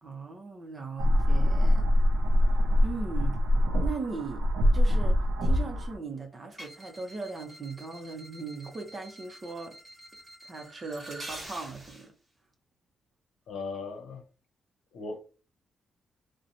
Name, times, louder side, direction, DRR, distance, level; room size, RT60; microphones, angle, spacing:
voice 1, 0.0-1.8 2.8-3.4 3.8-4.5 4.7-5.2 5.4-9.7 10.4-12.1, right 4 dB, 30° right, 0.6 m, -38 dB
sound 1, 1.0-6.0, left 1 dB, 85° right, 0.5 m, -24 dB
sound 2, 6.5-12.1, right 1 dB, 10° right, 1.4 m, -47 dB
voice 2, 13.5-14.2 14.9-15.2, left 4 dB, 90° left, 0.7 m, -37 dB
2.8 x 2.1 x 2.5 m
wide cardioid pair, 145°, 0 cm